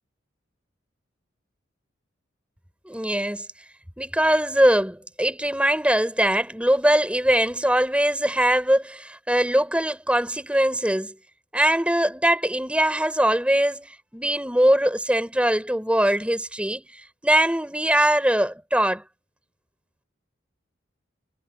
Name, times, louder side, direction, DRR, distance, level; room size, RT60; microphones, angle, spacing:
voice 1, 2.9-3.5 4.0-11.2 11.5-16.9 17.2-19.0, right 1 dB, 5° right, 4.1 m, -21 dB
head